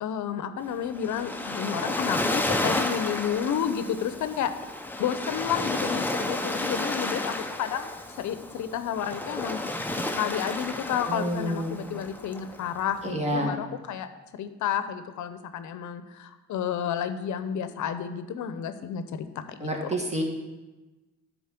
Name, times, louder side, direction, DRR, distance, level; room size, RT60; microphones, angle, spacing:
voice 1, 0.0-4.5 5.0-7.9 8.2-9.6 10.1-19.9, left 8 dB, 70° left, 10 dB, 0.8 m, -31 dB
Waves surf, 0.6-13.0, left 2 dB, 5° left, 0.7 m, -32 dB
voice 2, 11.1-11.7 13.0-13.5 19.6-20.2, right 1 dB, 20° right, 0 dB, 1.9 m, -28 dB
10.5 x 4.2 x 5.9 m, 1.1 s
cardioid pair, 90°, 30 cm